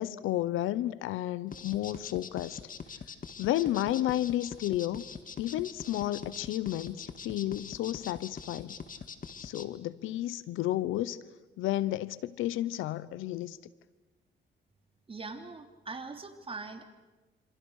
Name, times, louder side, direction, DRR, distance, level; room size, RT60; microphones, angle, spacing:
voice 1, 0.0-2.6 3.4-5.0 5.4-8.7 9.4-11.2 11.6-13.6, left 14 dB, 90° left, 18 dB, 0.9 m, -32 dB
sound 1, 1.5-9.6, left 6 dB, 45° left, 2.0 m, -43 dB
voice 2, 15.1-16.8, right 3 dB, 25° right, 6 dB, 3.2 m, -41 dB
27.5 x 27.0 x 6.5 m, 1.2 s
cardioid pair, 90°, 20 cm